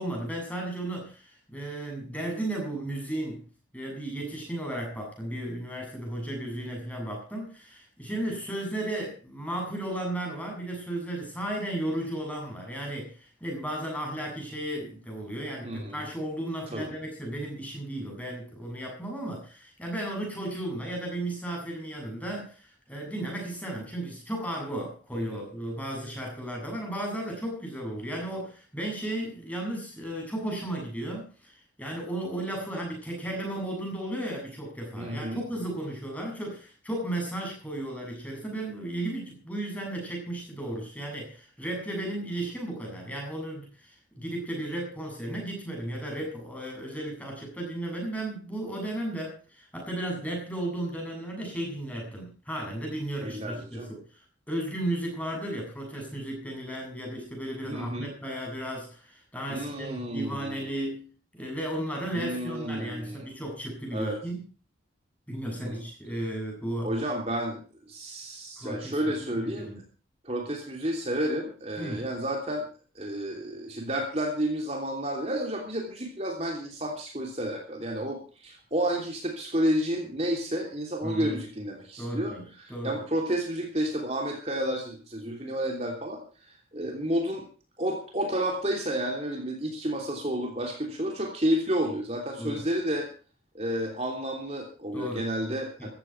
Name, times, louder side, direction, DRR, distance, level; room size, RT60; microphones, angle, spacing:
voice 1, 0.0-3.5 3.7-54.2 54.5-61.1 61.4-64.4 65.3-66.9 68.6-69.8 71.8-72.1 81.0-81.4 82.0-83.0 92.4-92.6 94.9-95.3 95.8-95.9, right 1 dB, 10° left, 0 dB, 7.7 m, -34 dB
voice 2, 15.6-16.0 16.7-16.9 25.3-25.4 35.0-35.4 53.2-53.9 57.6-58.1 59.5-60.7 62.1-63.3 63.9-64.2 65.5-65.8 66.8-69.7 70.2-72.6 72.9-86.2 86.7-87.4 87.8-93.1 93.5-95.9, right 1 dB, 35° right, 1 dB, 3.1 m, -31 dB
15.5 x 14.5 x 4.6 m, 0.38 s
head